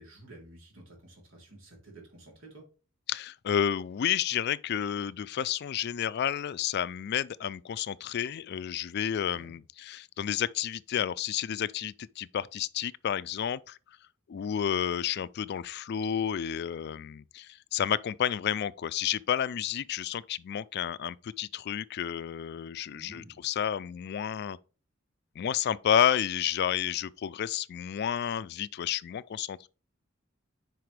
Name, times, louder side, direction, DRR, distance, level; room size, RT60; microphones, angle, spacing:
voice 1, 0.0-2.6 9.3-9.5 22.9-23.4, right 1 dB, 70° right, 3.4 m, -51 dB
voice 2, 3.1-13.8 14.3-24.6 25.4-29.7, left 9 dB, 55° left, 0.3 m, -31 dB
9.4 x 5.0 x 3.3 m
head